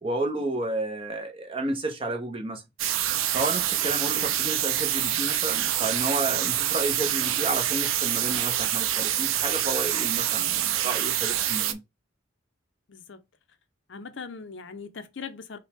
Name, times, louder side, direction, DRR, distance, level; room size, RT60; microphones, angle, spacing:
voice 1, 0.0-2.6 3.3-11.8, right 2 dB, 25° right, 0.8 m, -31 dB
sound 1, 2.8-11.7, right 11 dB, 80° right, 0.5 m, -26 dB
sound 2, 3.1-8.4, right 1 dB, 10° right, 1.9 m, -51 dB
voice 2, 12.9-13.2 13.9-15.6, left 5 dB, 60° left, 0.6 m, -40 dB
5.3 x 2.3 x 3.5 m
head